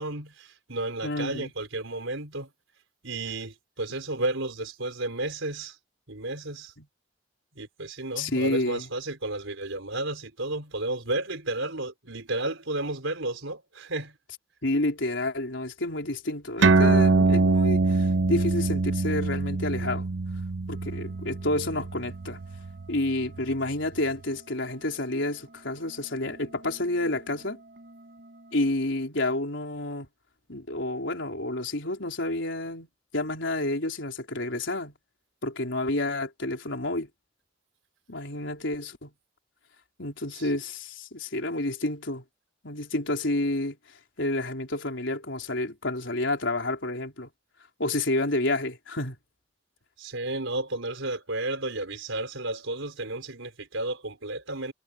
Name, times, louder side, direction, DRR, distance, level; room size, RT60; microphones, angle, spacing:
voice 1, 0.0-2.5 3.0-5.8 6.1-6.7 7.6-14.2 40.3-40.5 50.0-54.7, right 2 dB, 90° right, 4.3 m, -32 dB
voice 2, 1.0-1.5 6.8-6.9 8.2-8.9 14.6-20.1 20.7-22.4 22.9-27.6 28.5-30.1 30.5-32.9 33.1-34.9 35.4-37.1 38.1-39.1 40.0-42.2 42.6-43.8 44.2-47.3 47.8-49.2, left 2 dB, 75° left, 4.1 m, -29 dB
sound 1, 16.6-23.5, right 3 dB, 65° right, 0.7 m, -24 dB
sound 2, 20.7-28.7, right 2 dB, 50° right, 6.3 m, -53 dB
head